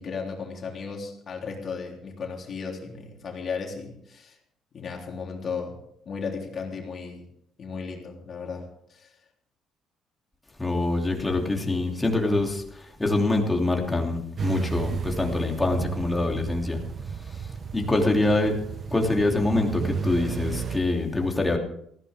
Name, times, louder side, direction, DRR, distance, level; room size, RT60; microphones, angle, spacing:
voice 1, 0.0-4.4 4.7-5.8 6.0-7.2 7.6-9.1 18.2-18.3, left 5 dB, 45° left, 0 dB, 3.5 m, -35 dB
voice 2, 10.6-16.8 17.2-17.5 17.7-18.6 18.9-21.6, left 2 dB, 10° left, 1 dB, 2.9 m, -25 dB
sound 1, 14.4-20.8, right 6 dB, 40° right, 0.8 m, -33 dB
19.0 x 15.5 x 3.6 m, 0.69 s
cardioid pair, 125°, 0 cm